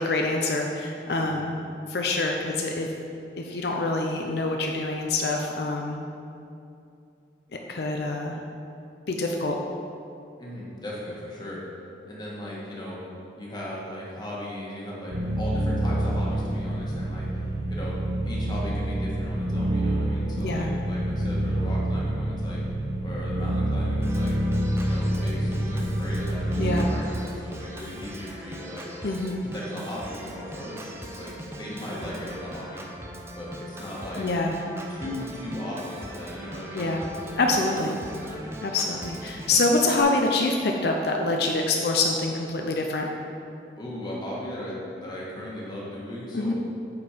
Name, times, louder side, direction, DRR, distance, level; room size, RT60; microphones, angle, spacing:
voice 1, 0.0-1.6 1.9-2.9 3.4-6.0 7.7-8.4 9.1-9.6 16.7-16.9 20.4-20.7 26.6-26.9 29.0-29.4 34.2-34.6 36.7-37.0 37.4-38.0 38.6-43.1 46.3-46.5, left 2 dB, 60° left, 1 dB, 0.5 m, -26 dB
voice 2, 1.2-1.5 10.4-11.6 12.1-13.0 13.4-17.4 17.7-22.6 23.0-24.3 24.8-28.9 29.4-32.9 33.4-34.3 34.9-37.2 38.0-38.4 43.8-46.5, left 1 dB, 25° left, -5 dB, 1.4 m, -37 dB
sound 1, 15.1-26.8, right 1 dB, 80° right, 1.1 m, -27 dB
Organ, 24.0-40.0, right 1 dB, 15° right, 0.5 m, -40 dB
8.2 x 4.4 x 5.0 m, 2.6 s
head